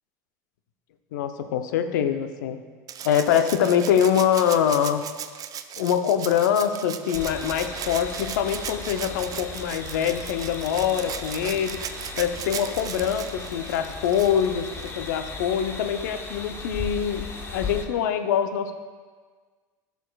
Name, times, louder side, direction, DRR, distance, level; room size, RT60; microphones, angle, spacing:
voice 1, 1.1-2.6 3.0-5.0 5.8-11.8 12.1-18.7, left 8 dB, 85° left, 9 dB, 0.5 m, -24 dB
Rattle (instrument), 2.9-15.2 16.6-16.7, right 9 dB, 40° right, 0.4 m, -37 dB
sound 1, 7.1-17.9, left 4 dB, 25° left, 0.9 m, -37 dB
11.0 x 6.9 x 2.3 m, 1.5 s
supercardioid pair, 95°, 10 cm